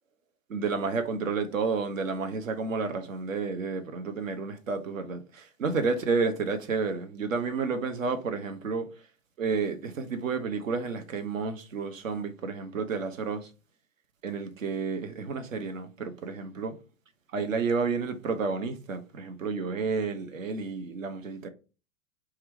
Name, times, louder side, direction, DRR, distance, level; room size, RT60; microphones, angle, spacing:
voice 1, 0.5-8.9 9.4-13.5 14.2-16.8 17.3-21.5, right 4 dB, 70° right, 0.7 m, -31 dB
2.8 x 2.3 x 3.3 m
figure-of-eight pair, 95°, 40 cm